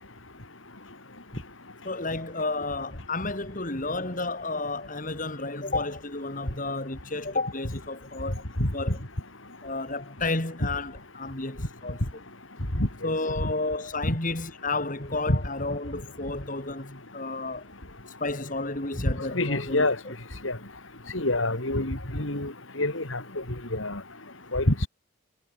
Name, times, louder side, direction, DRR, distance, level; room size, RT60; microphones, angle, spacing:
voice 1, 1.8-8.4 8.7-9.0 9.6-12.0 13.0-17.6 18.2-20.1, left 2 dB, 40° left, 3.2 m, -31 dB
voice 2, 19.3-20.0 20.4-20.6 21.1-23.2 23.7-24.0 24.5-24.9, left 1 dB, 75° left, 4.4 m, -26 dB
head